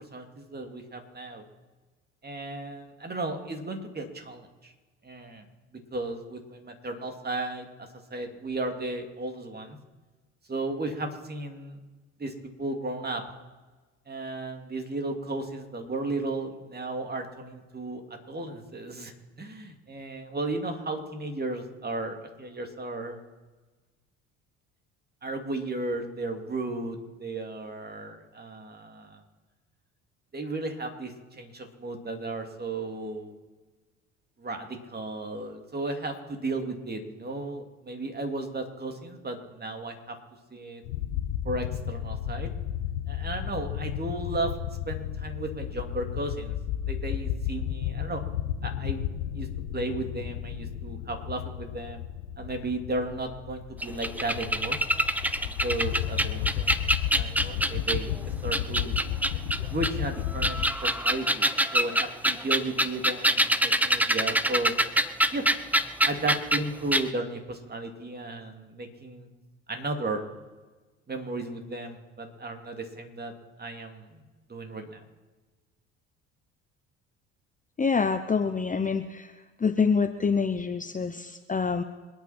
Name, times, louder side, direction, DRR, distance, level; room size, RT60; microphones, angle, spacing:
voice 1, 0.0-1.4 2.2-4.7 5.0-5.4 5.9-9.8 10.5-11.8 12.2-13.2 14.1-18.0 18.3-23.2 25.2-29.2 30.3-33.4 34.4-40.2 40.5-40.8 41.4-42.5 43.1-44.5 44.9-46.6 46.9-48.2 48.6-49.0 49.3-49.5 49.7-52.0 52.4-54.8 55.6-56.8 57.1-58.1 58.4-59.0 59.7-64.7 65.3-65.4 66.0-69.3 69.7-70.2 71.1-73.3 73.6-74.2 74.5-75.0, right 2 dB, 25° right, 5 dB, 2.9 m, -34 dB
sound 1, 40.8-60.7, left 10 dB, 80° left, 1.3 m, -33 dB
sound 2, 53.8-58.1 58.5-59.9 60.3-66.6 66.9-67.0, right 1 dB, 5° right, 0.9 m, -25 dB
voice 2, 77.8-79.3 79.6-81.8, left 5 dB, 20° left, 9 dB, 1.0 m, -26 dB
27.0 x 9.3 x 4.5 m, 1.3 s
hypercardioid pair, 65°, 35 cm